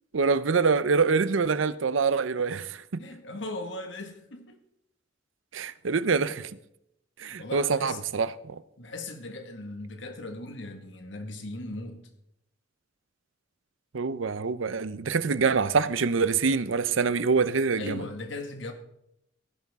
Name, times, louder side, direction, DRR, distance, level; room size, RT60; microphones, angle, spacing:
voice 1, 0.1-3.0 5.5-6.5 7.2-8.6 13.9-18.0, right 5 dB, 85° right, 0.7 m, -25 dB
voice 2, 3.0-4.6 7.2-8.0 8.8-12.0 17.8-18.7, left 2 dB, 65° left, 1.8 m, -38 dB
16.5 x 11.0 x 3.6 m
head